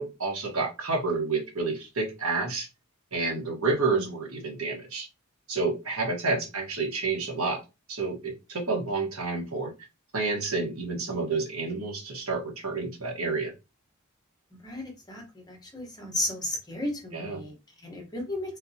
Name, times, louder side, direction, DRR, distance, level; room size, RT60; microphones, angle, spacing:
voice 1, 0.0-2.7 3.1-5.1 5.5-7.6 7.9-9.7 10.1-13.5 17.1-17.4, right 3 dB, 80° right, 1 dB, 1.3 m, -29 dB
voice 2, 14.6-18.6, left 1 dB, 20° left, 1 dB, 1.1 m, -34 dB
3.8 x 2.8 x 2.7 m, 0.27 s
head